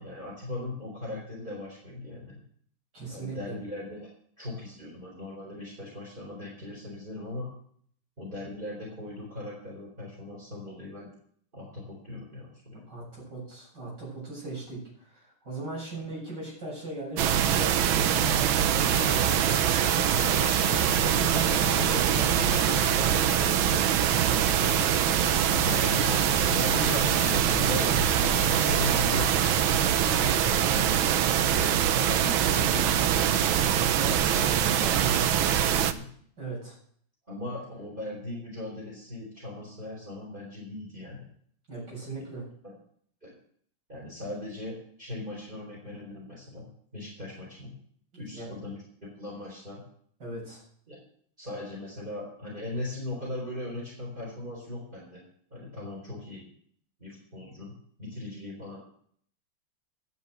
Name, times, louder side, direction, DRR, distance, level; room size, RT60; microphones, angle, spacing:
voice 1, 0.0-2.4 3.1-4.1 4.4-7.5 8.2-11.1 11.5-12.8 20.1-20.7 25.6-29.3 30.0-31.1 31.4-36.1 37.3-41.3 42.0-42.2 43.2-43.3 43.9-46.7 46.9-47.7 48.2-48.8 49.1-49.8 50.9-51.0 51.4-55.2 55.5-56.4 57.0-57.7 58.0-58.8, left 2 dB, 25° right, -3 dB, 4.3 m, -39 dB
voice 2, 2.9-3.5 12.9-19.3 21.0-22.3 22.6-23.7 36.4-36.8 41.7-42.4 48.1-48.6 50.2-50.6, right 2 dB, 60° right, -5 dB, 8.3 m, -39 dB
sound 1, 17.2-35.9, right 9 dB, 85° right, 1.6 m, -24 dB
sound 2, 18.7-29.7, left 3 dB, 40° left, 1.6 m, -36 dB
12.0 x 8.0 x 7.8 m, 0.62 s
omnidirectional pair, 2.2 m